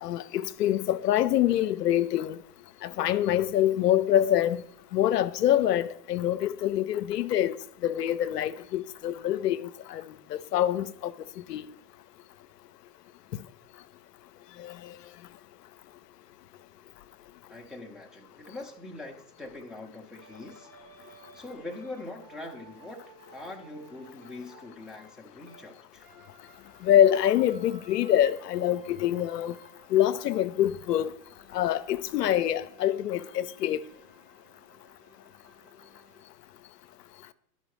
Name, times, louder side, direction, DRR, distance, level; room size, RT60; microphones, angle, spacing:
voice 1, 0.0-2.4 2.8-4.6 4.9-7.6 7.8-10.0 10.3-11.1 11.5-11.6 14.6-14.9 26.8-29.6 29.9-31.1 31.5-33.8, left 11 dB, 75° left, 0.5 m, -25 dB
voice 2, 17.5-20.7 21.0-23.0 23.3-26.1, left 2 dB, ahead, 0.6 m, -43 dB
sound 1, 20.2-25.7 26.0-36.2, right 3 dB, 40° right, 1.6 m, -56 dB
11.5 x 5.6 x 3.1 m
hypercardioid pair, 105°, 48 cm